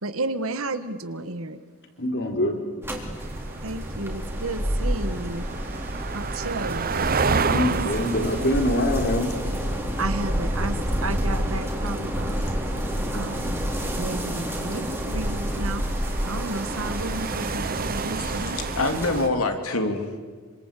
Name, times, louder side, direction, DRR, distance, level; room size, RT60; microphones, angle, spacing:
voice 1, 0.0-1.6 3.6-5.4 6.1-8.1 10.0-12.4 13.1-13.7 14.0-15.8 16.2-18.6, right 2 dB, 70° right, 11 dB, 1.7 m, -32 dB
voice 2, 2.0-2.6 7.4-9.4, left 1 dB, 55° left, 4 dB, 4.3 m, -24 dB
sound 1, 2.8-19.2, equal, 10° right, 3.9 m, -29 dB
sound 2, 3.2-19.3, right 4 dB, 45° right, 0.9 m, -32 dB
voice 3, 18.0-20.2, left 2 dB, 75° left, 6 dB, 3.1 m, -26 dB
27.0 x 26.0 x 8.6 m, 1.5 s
head